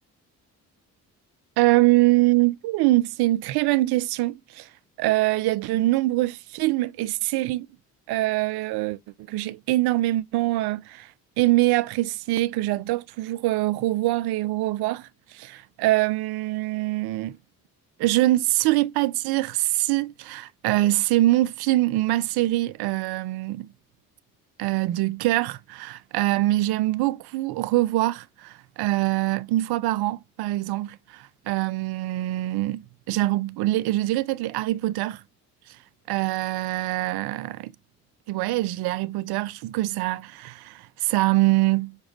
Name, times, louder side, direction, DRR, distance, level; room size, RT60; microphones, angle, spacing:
voice 1, 1.6-4.7 5.0-7.7 8.1-9.0 9.3-11.1 11.4-17.4 18.0-23.7 24.6-35.2 35.7-35.8 36.1-37.7 38.3-42.0, right 17 dB, 60° right, 0.5 m, -24 dB
6.5 x 2.3 x 3.1 m
figure-of-eight pair, 40°, 45 cm